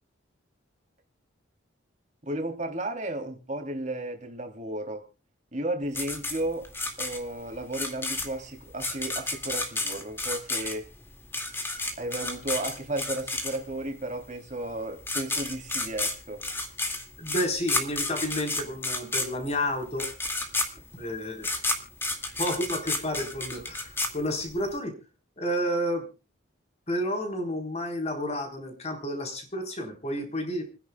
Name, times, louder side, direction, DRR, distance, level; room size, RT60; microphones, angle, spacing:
voice 1, 2.2-5.0 5.5-6.7 7.0-10.9 12.0-16.4, right 1 dB, 35° right, 3 dB, 3.1 m, -33 dB
sound 1, 5.9-13.9 14.7-14.8 15.0-24.7, left 2 dB, 10° left, 2.1 m, -31 dB
voice 2, 17.2-20.1 20.9-21.6 22.4-24.9 25.4-26.1 26.9-30.6, equal, 35° left, 3 dB, 4.0 m, -31 dB
29.5 x 10.5 x 2.3 m, 0.31 s
head